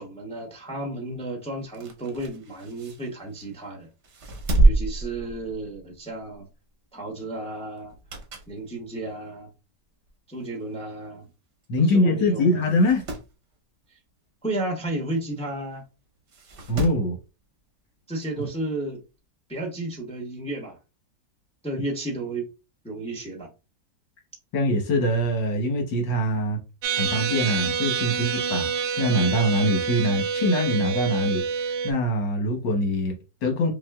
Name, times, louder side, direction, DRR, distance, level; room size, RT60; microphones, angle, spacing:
voice 1, 0.0-3.9 4.6-6.5 6.9-7.9 8.5-9.5 10.3-11.2 11.8-12.7 14.4-15.8 18.1-19.0 19.5-20.8 21.6-22.5 22.8-23.5, right 2 dB, 5° left, 0.6 m, -33 dB
sound 1, 1.6-3.6 4.0-5.9 6.3-6.5 7.8-8.6 9.1-9.2 10.1-10.2 10.4-10.5 10.7-10.8 11.6-11.8 12.1-12.2 12.6-13.3 15.2-15.3 16.3-17.1 18.4-18.5, right 2 dB, 50° right, 1.0 m, -26 dB
voice 2, 11.7-13.0 16.7-17.2 24.5-26.6 27.0-28.7 29.0-33.7, left 1 dB, 80° left, 1.8 m, -23 dB
sound 2, 26.8-31.9, right 6 dB, 80° right, 1.3 m, -27 dB
5.7 x 2.4 x 2.4 m
omnidirectional pair, 1.9 m